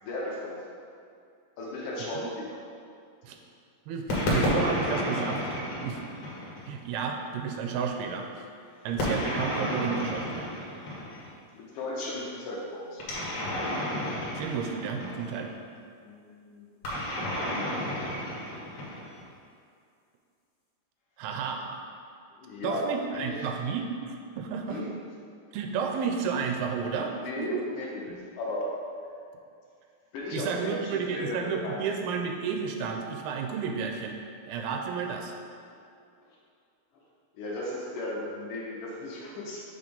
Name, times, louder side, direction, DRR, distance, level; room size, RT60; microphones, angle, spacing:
voice 1, 0.0-0.6 1.6-2.6 11.5-13.0 16.0-16.7 22.4-23.4 24.7-24.9 27.1-28.1 28.4-28.7 30.1-31.8 37.3-39.6, left 1 dB, 70° left, -4 dB, 2.0 m, -35 dB
voice 2, 3.9-6.0 6.7-8.5 8.8-10.5 14.3-15.5 21.2-21.8 22.6-24.8 25.5-27.6 28.1-28.2 30.3-34.2 34.5-35.3, right 6 dB, 85° right, 3 dB, 2.4 m, -32 dB
sound 1, 4.1-6.7 9.0-11.3 13.0-15.5 16.8-19.3, left 1 dB, 50° left, 2.1 m, -31 dB
7.5 x 3.3 x 5.2 m, 2.4 s
omnidirectional pair, 4.3 m